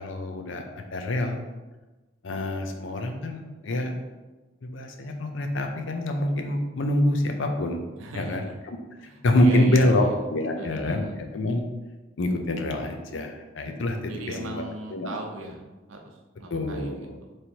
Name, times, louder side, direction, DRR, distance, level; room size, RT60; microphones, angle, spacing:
voice 1, 0.0-1.4 2.2-3.9 4.6-7.8 8.1-10.0 10.3-11.6 12.2-14.6 14.9-15.2 16.5-17.2, left 1 dB, 65° left, 4 dB, 0.5 m, -26 dB
voice 2, 8.0-8.5 9.0-10.1 10.6-11.1 14.0-17.4, right 2 dB, 85° right, 2 dB, 0.7 m, -38 dB
3.2 x 2.8 x 4.3 m, 1.1 s
head